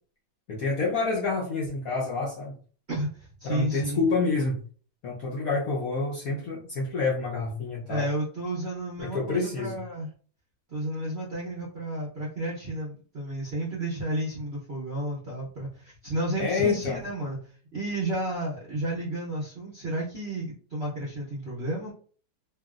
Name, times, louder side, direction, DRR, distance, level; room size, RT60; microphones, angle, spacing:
voice 1, 0.5-2.5 3.4-4.6 5.0-8.1 9.0-9.8 16.4-17.0, left 3 dB, 75° left, -3 dB, 0.8 m, -28 dB
voice 2, 2.9-4.0 7.9-10.1 10.7-17.4 17.7-21.9, right 1 dB, 55° right, -5 dB, 0.7 m, -32 dB
2.9 x 2.6 x 2.4 m, 0.43 s
omnidirectional pair, 2.2 m